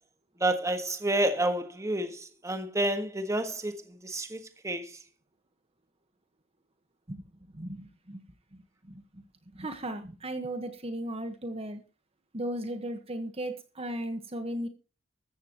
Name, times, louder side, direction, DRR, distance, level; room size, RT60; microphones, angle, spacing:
voice 1, 0.4-4.9, right 1 dB, 15° right, 1.5 m, -29 dB
voice 2, 7.5-8.2 8.5-9.2 9.5-11.8 12.3-14.7, right 1 dB, 30° right, 1.3 m, -36 dB
14.5 x 14.5 x 3.0 m
head